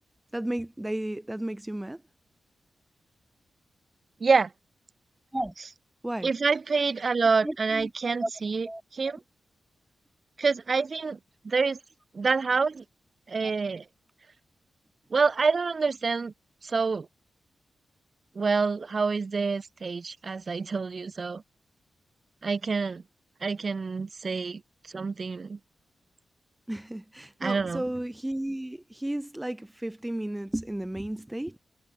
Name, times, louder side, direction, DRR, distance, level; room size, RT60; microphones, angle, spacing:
voice 1, 0.3-2.0 5.3-5.5 6.0-6.3 7.4-7.9 8.2-8.3 8.6-9.1 13.4-13.5 26.7-31.6, right 1 dB, 15° right, 1.1 m, -33 dB
voice 2, 4.2-4.5 6.2-8.7 8.9-9.2 10.4-11.2 11.4-11.8 12.1-12.8 13.3-13.8 15.1-16.3 16.6-17.1 18.4-21.4 22.4-23.0 23.4-24.6 24.9-25.6 27.4-27.8, right 4 dB, 55° right, 2.3 m, -27 dB
supercardioid pair, 40°, 0 cm